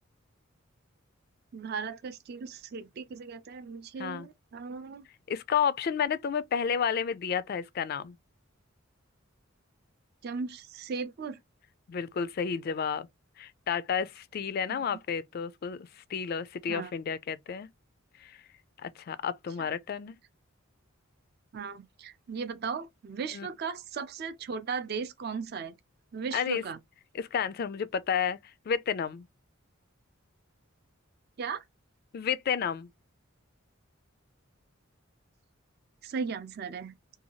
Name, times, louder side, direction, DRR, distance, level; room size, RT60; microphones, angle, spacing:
voice 1, 1.5-5.1 10.2-11.4 14.7-14.8 16.7-16.9 19.6-19.7 21.5-25.7 26.1-26.8 31.4-31.6 36.0-36.9, right 5 dB, 50° right, 0.4 m, -37 dB
voice 2, 5.3-8.2 11.9-13.1 13.4-17.7 18.2-18.4 18.8-20.2 23.3-23.5 26.3-26.6 27.1-28.4 28.7-29.3 32.1-32.9, left 7 dB, 45° left, 0.3 m, -31 dB
2.7 x 2.3 x 2.9 m
head